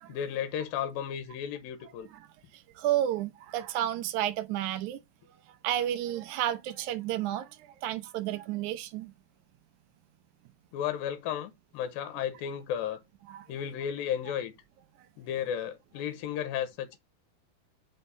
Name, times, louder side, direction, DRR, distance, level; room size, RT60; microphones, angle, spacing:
voice 1, 0.1-2.1 10.7-13.0 13.5-14.5 15.2-17.0, left 9 dB, 85° left, 2.6 m, -34 dB
voice 2, 2.8-5.0 5.6-7.5 7.8-9.1 13.3-13.4, right 12 dB, 80° right, 1.7 m, -31 dB
5.4 x 4.5 x 4.0 m
omnidirectional pair, 4.1 m